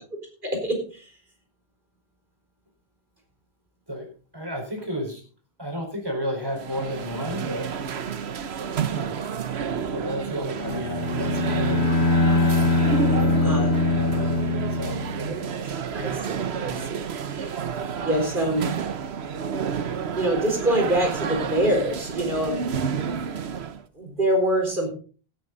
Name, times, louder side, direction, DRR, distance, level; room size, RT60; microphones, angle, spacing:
voice 1, 0.4-1.1 13.4-13.7 15.2-15.3 15.6-17.6 18.0-18.7 20.1-22.6 23.9-24.9, right 1 dB, 55° right, 3 dB, 4.4 m, -25 dB
voice 2, 4.3-5.2 5.6-7.7 8.9-9.3 9.9-11.9 13.0-14.4 14.7-15.0, equal, 20° right, 2 dB, 4.6 m, -32 dB
sound 1, 6.5-23.8, right 7 dB, 90° right, 1.2 m, -30 dB
Bowed string instrument, 10.6-15.4, left 3 dB, 85° left, 2.3 m, -22 dB
17.5 x 9.0 x 4.0 m, 0.39 s
omnidirectional pair, 1.0 m